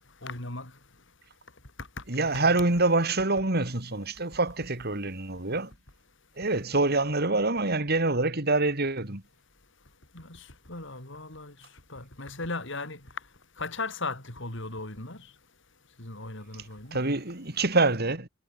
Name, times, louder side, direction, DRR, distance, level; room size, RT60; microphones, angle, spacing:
voice 1, 0.2-0.7 2.3-2.4 10.1-11.5 11.9-13.0 13.6-15.3 16.0-17.0, left 3 dB, 65° left, 6.3 m, -37 dB
voice 2, 2.1-5.7 6.4-9.2 16.9-18.3, right 2 dB, 50° right, 3.5 m, -26 dB
head